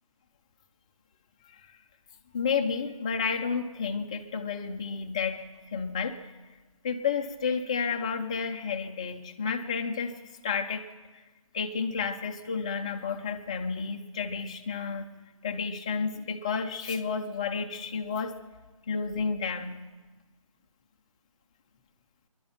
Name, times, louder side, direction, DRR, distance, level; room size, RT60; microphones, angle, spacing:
voice 1, 2.3-6.2 6.8-10.1 10.4-10.8 11.5-15.1 15.4-18.3 18.9-19.8, left 5 dB, 10° left, 3 dB, 0.4 m, -31 dB
21.5 x 11.5 x 5.7 m, 1.3 s
figure-of-eight pair, 155°, 18 cm